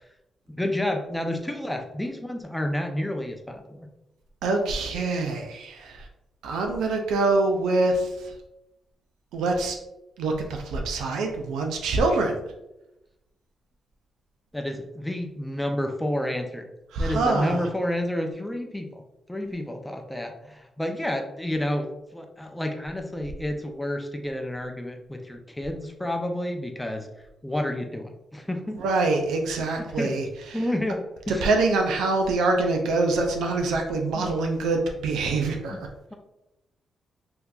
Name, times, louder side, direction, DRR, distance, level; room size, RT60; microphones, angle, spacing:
voice 1, 0.5-3.9 14.5-16.7 17.0-19.0 19.3-27.1 27.4-28.8 29.6-30.2 30.5-31.4 34.1-34.3 35.7-35.8, left 1 dB, 10° left, 4 dB, 0.6 m, -30 dB
voice 2, 4.4-6.1 6.4-8.3 9.3-9.8 10.2-12.4 16.9-17.6 28.8-30.6 31.4-35.9, right 3 dB, 75° right, 3 dB, 0.4 m, -25 dB
3.6 x 2.8 x 2.4 m, 0.91 s
hypercardioid pair, 45°, 0 cm